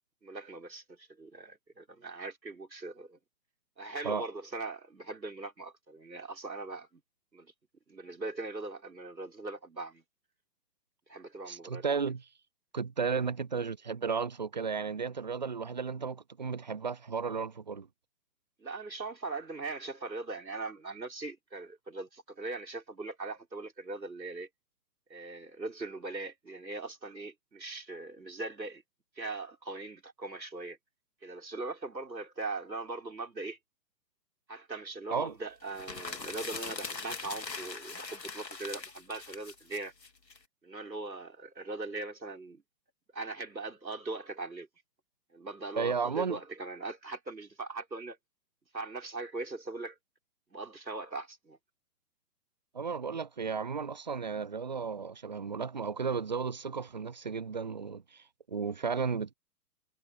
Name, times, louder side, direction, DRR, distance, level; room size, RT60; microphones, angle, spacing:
voice 1, 0.2-3.2 3.8-7.0 7.3-7.5 7.9-10.0 11.1-12.0 18.6-24.5 25.1-28.8 29.1-30.8 31.2-33.6 34.5-39.9 40.6-42.6 43.1-44.7 45.3-48.2 48.7-50.0 50.5-51.6, right 3 dB, 80° right, 4.9 m, -40 dB
voice 2, 11.5-12.2 12.7-17.9 35.1-35.3 45.8-46.4 52.7-59.3, right 5 dB, 30° right, 0.4 m, -34 dB
sound 1, 35.7-40.4, left 4 dB, 80° left, 3.0 m, -41 dB
figure-of-eight pair, 125°, 50 cm